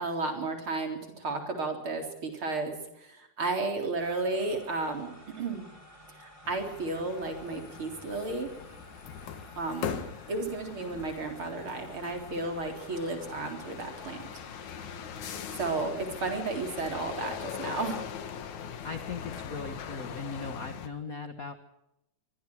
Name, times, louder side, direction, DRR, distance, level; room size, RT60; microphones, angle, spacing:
voice 1, 0.0-5.7 6.2-8.5 9.6-10.0 10.3-14.3 15.6-18.1, right 3 dB, 45° right, 3 dB, 4.6 m, -33 dB
sound 1, 4.0-17.0, left 1 dB, 10° left, 5.2 m, -53 dB
sound 2, 6.4-20.9, left 8 dB, 75° left, 2.9 m, -41 dB
voice 2, 18.8-21.5, left 4 dB, 45° left, 8 dB, 1.2 m, -38 dB
24.5 x 23.0 x 4.8 m, 0.88 s
omnidirectional pair, 3.5 m